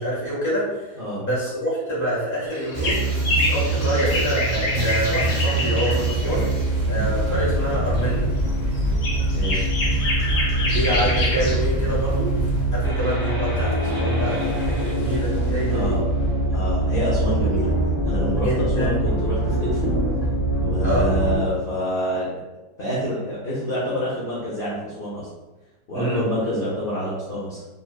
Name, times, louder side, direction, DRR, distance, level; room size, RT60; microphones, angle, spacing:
voice 1, 0.0-3.0 3.5-6.5 6.8-8.3 10.6-12.3 12.7-15.9 18.4-19.0 20.8-21.1 25.9-26.2, equal, 10° left, -7 dB, 1.3 m, -26 dB
sound 1, 2.5-6.6 7.7-8.0 8.4-11.8 12.1-12.2 12.5-12.6, left 2 dB, 65° left, 1.3 m, -27 dB
sound 2, 2.7-21.4, right 1 dB, 20° right, 0.9 m, -23 dB
voice 2, 9.3-9.7 15.7-16.0 16.5-17.7 18.0-19.9 20.6-22.3 22.8-25.3 25.9-27.6, equal, 40° left, -8 dB, 1.0 m, -27 dB
4.3 x 3.3 x 2.4 m, 1.1 s
omnidirectional pair, 1.9 m